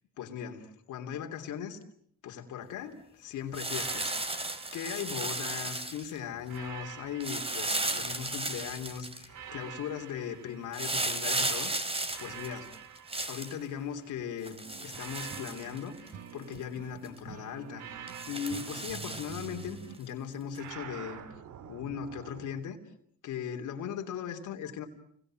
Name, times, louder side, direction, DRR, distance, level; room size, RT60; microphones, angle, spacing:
voice 1, 0.2-1.8 2.2-4.1 4.7-11.7 12.2-12.7 13.3-17.8 18.3-21.2 21.7-22.8 23.2-24.9, left 8 dB, 80° left, 4 dB, 3.1 m, -38 dB
sound 1, 3.5-6.2 7.2-9.3 10.7-13.6 14.4-16.1 16.5-16.6 17.0-17.2 18.1-19.7 20.6-20.7, right 2 dB, 20° right, 2.8 m, -35 dB
sound 2, 3.7-5.8 6.5-8.6 9.3-11.5 12.1-14.2 14.9-17.1 17.7-19.9 20.6-22.6, right 8 dB, 70° right, 1.9 m, -48 dB
sound 3, 14.6-20.0, right 7 dB, 55° right, 1.4 m, -48 dB
29.0 x 22.5 x 7.7 m, 0.66 s
cardioid pair, 90°, 30 cm